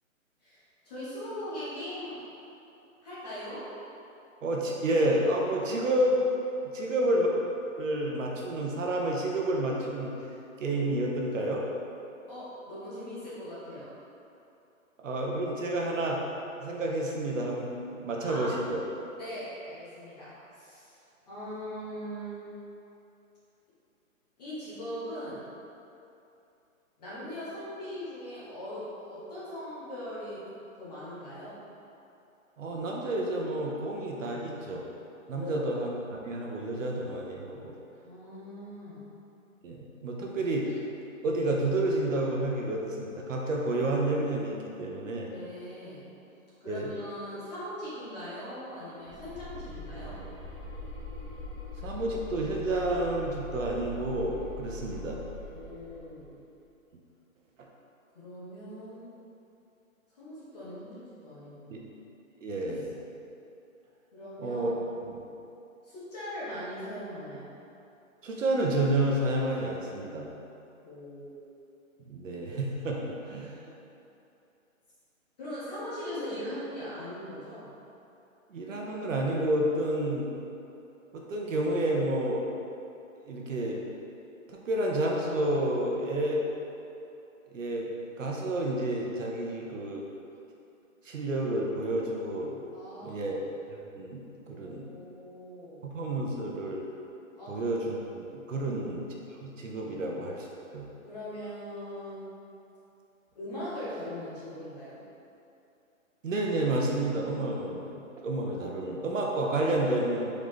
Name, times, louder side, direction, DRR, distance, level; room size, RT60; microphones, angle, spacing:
voice 1, 0.4-2.2 3.0-3.6 12.3-13.9 18.2-18.5 19.2-21.0 21.3-22.5 24.4-25.4 27.0-30.4 30.8-31.6 35.3-35.7 38.0-39.0 45.2-46.0 46.6-50.2 54.9-55.0 55.5-56.4 58.1-59.1 60.2-61.9 64.1-64.8 65.8-67.5 70.8-71.4 73.6-73.7 75.4-77.7 92.7-93.4 94.5-95.8 97.4-97.8 98.5-98.7 99.9-100.0 101.1-102.3 103.3-105.0, equal, 30° left, -10 dB, 1.1 m, -40 dB
voice 2, 4.4-6.2 6.7-7.4 7.8-10.1 10.6-11.6 15.0-16.2 16.6-18.8 32.6-34.8 35.3-37.7 39.6-40.9 41.2-45.3 46.6-46.9 51.8-55.2 57.6-57.7 61.7-61.8 62.4-62.9 64.4-64.8 65.0-65.2 68.2-70.3 72.1-73.6 78.5-80.3 81.1-82.4 83.3-83.8 84.5-86.4 87.5-87.9 88.2-90.0 91.0-92.6 93.0-93.4 93.7-94.9 95.8-96.8 97.5-99.1 99.4-100.5 100.7-100.9 106.2-110.3, right 1 dB, 65° right, -1 dB, 0.7 m, -30 dB
sound 1, 49.0-56.3, left 2 dB, 20° right, 0.5 m, -42 dB
3.9 x 3.5 x 3.2 m, 2.8 s
hypercardioid pair, 170°, 41 cm